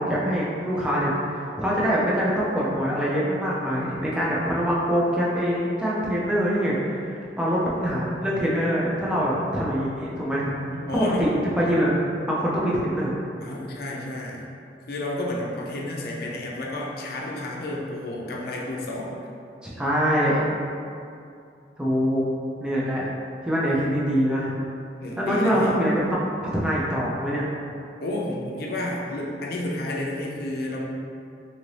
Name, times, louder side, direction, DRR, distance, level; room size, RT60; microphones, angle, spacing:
voice 1, 0.0-10.5 10.9-11.3 11.6-11.9 12.3-13.1 19.6-20.4 21.8-22.2 22.6-23.1 23.4-24.5 25.2-26.2 26.5-27.5, equal, 5° right, -7 dB, 0.4 m, -24 dB
voice 2, 10.5-11.3 13.4-14.4 14.9-19.2 25.0-25.8 28.0-30.8, left 1 dB, 60° left, -3 dB, 0.5 m, -31 dB
2.7 x 2.6 x 3.1 m, 2.5 s
head